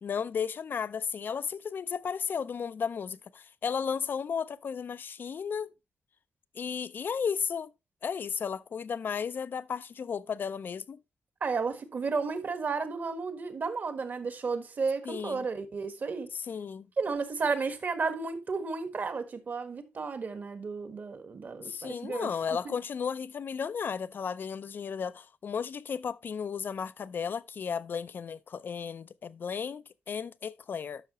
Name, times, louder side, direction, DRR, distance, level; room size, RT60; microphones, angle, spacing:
voice 1, 0.0-5.7 6.5-7.7 8.0-11.0 15.0-15.5 16.3-16.9 21.6-31.0, left 6 dB, 55° left, 0.5 m, -34 dB
voice 2, 11.4-16.3 17.0-22.3 22.6-22.7, right 4 dB, 50° right, 1.5 m, -33 dB
12.5 x 5.8 x 3.0 m
cardioid pair, 100°, 4 cm